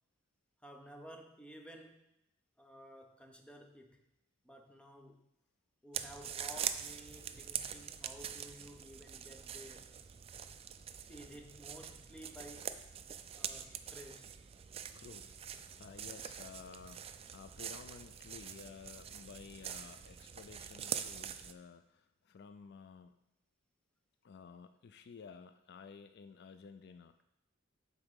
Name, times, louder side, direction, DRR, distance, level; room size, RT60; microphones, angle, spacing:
voice 1, 0.6-2.1 2.6-4.1 4.4-5.3 5.8-9.9 11.1-12.8 13.3-14.3, equal, 5° left, 4 dB, 0.7 m, -53 dB
sound 1, 5.9-21.5, right 8 dB, 30° right, 0.3 m, -44 dB
voice 2, 14.9-23.2 24.2-27.2, left 5 dB, 55° left, 10 dB, 0.4 m, -53 dB
8.7 x 3.8 x 6.3 m, 0.83 s
head